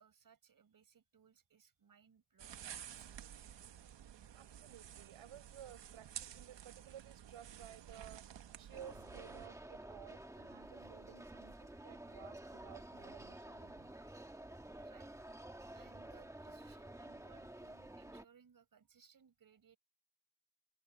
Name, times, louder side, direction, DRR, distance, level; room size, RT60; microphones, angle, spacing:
voice 1, 0.0-3.4 14.8-15.1 15.7-19.8, right 7 dB, 45° right, 4.9 m, -66 dB
sound 1, 2.4-9.5, right 10 dB, 65° right, 1.3 m, -52 dB
voice 2, 4.3-8.3 8.6-13.9 18.0-18.1, right 10 dB, 80° right, 6.7 m, -56 dB
sound 2, 8.7-18.2, right 1 dB, 5° right, 1.3 m, -51 dB
wide cardioid pair, 165°, 47 cm